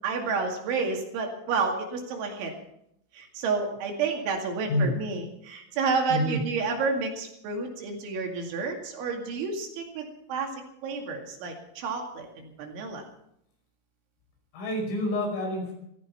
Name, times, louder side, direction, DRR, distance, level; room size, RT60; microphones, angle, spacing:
voice 1, 0.0-2.5 3.1-10.5 10.8-13.0, right 4 dB, 70° right, 2 dB, 4.6 m, -30 dB
voice 2, 6.1-6.4 14.5-15.7, left 1 dB, 80° left, 1 dB, 8.0 m, -27 dB
16.0 x 14.5 x 5.8 m, 0.78 s
omnidirectional pair, 5.8 m